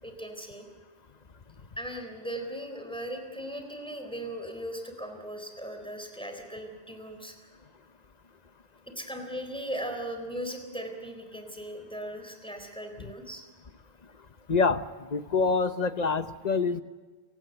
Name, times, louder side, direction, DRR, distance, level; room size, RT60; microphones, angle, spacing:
voice 1, 0.0-0.7 1.8-7.5 9.0-13.4, right 1 dB, 5° left, 4 dB, 3.8 m, -38 dB
voice 2, 14.5-14.8 15.1-16.8, left 4 dB, 45° left, 11 dB, 1.0 m, -26 dB
30.0 x 17.5 x 8.0 m, 1.4 s
omnidirectional pair, 1.0 m